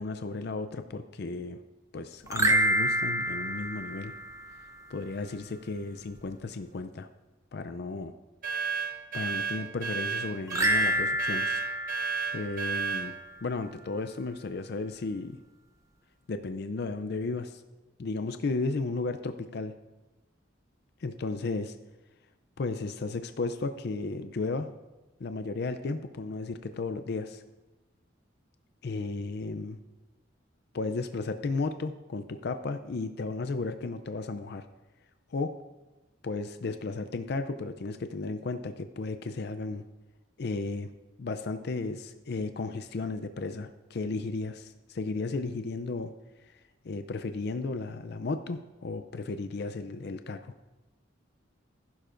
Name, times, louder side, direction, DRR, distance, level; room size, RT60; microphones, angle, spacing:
voice 1, 0.0-1.6 1.9-4.1 4.9-7.1 7.5-8.1 9.1-11.6 12.3-13.1 13.4-15.4 16.3-17.6 18.0-19.7 21.0-21.7 22.6-24.7 25.2-27.4 28.8-29.8 30.7-34.7 35.3-35.5 36.2-39.8 40.4-40.9 41.2-46.1 46.5-50.5, left 3 dB, 55° left, 9 dB, 0.4 m, -34 dB
sound 1, 2.3-4.8 10.5-13.1, right 1 dB, 15° right, 0.7 m, -28 dB
sound 2, 8.4-13.1, right 6 dB, 45° right, 1.8 m, -32 dB
14.5 x 11.5 x 2.5 m, 1.1 s
head